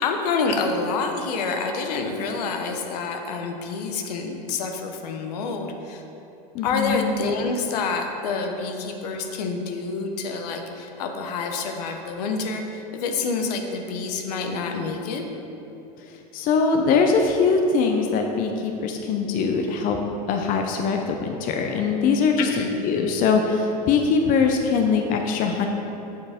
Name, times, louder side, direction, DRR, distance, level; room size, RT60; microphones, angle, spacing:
voice 1, 0.0-6.0 6.6-15.3 22.4-22.7, left 4 dB, 75° left, 4 dB, 0.8 m, -27 dB
voice 2, 6.5-7.0 16.0-20.0 20.3-22.5 22.8-25.7, left 5 dB, 45° left, 3 dB, 0.6 m, -22 dB
7.1 x 4.7 x 4.3 m, 2.9 s
hypercardioid pair, 105°, 21 cm